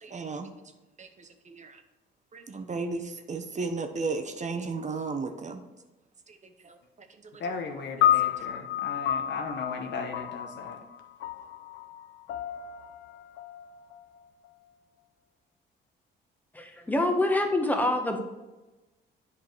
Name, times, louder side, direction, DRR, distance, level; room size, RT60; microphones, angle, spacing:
voice 1, 0.0-0.5 1.0-1.8 2.3-5.6 6.3-6.4 6.6-6.8, right 4 dB, 35° right, 7 dB, 0.9 m, -34 dB
voice 2, 7.4-10.8, left 4 dB, 65° left, 4 dB, 1.2 m, -36 dB
sound 1, 8.0-14.5, left 11 dB, 85° left, 0.5 m, -30 dB
voice 3, 16.5-18.2, left 1 dB, 10° left, 4 dB, 1.3 m, -26 dB
8.5 x 4.9 x 4.7 m, 1.1 s
cardioid pair, 90°, 20 cm